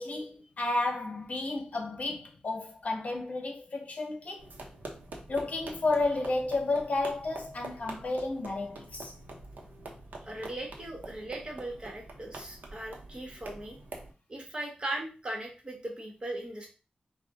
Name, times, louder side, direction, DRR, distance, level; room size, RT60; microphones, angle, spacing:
voice 1, 0.0-4.5 5.3-9.1, left 2 dB, 55° left, 1.0 m, -32 dB
sound 1, 4.4-14.1, right 2 dB, 75° right, 1.0 m, -45 dB
voice 2, 10.2-13.8 14.3-16.7, right 1 dB, 30° right, 1.3 m, -38 dB
4.9 x 2.4 x 3.6 m
wide cardioid pair, 100°, 3 cm